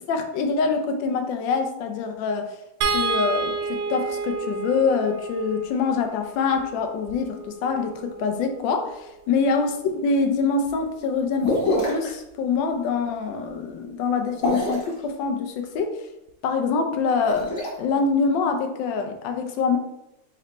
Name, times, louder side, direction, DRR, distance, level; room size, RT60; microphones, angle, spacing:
voice 1, 0.1-2.6 2.9-16.0 16.4-17.5 17.8-19.8, left 5 dB, 70° left, 5 dB, 1.2 m, -25 dB
sound 1, 2.8-9.1 10.7-10.8 11.2-11.3, right 4 dB, 80° right, 1.4 m, -31 dB
sound 2, 11.4-12.1 14.3-14.9 17.1-17.7, equal, 45° left, 1.3 m, -26 dB
4.1 x 3.2 x 4.0 m, 0.87 s
omnidirectional pair, 2.4 m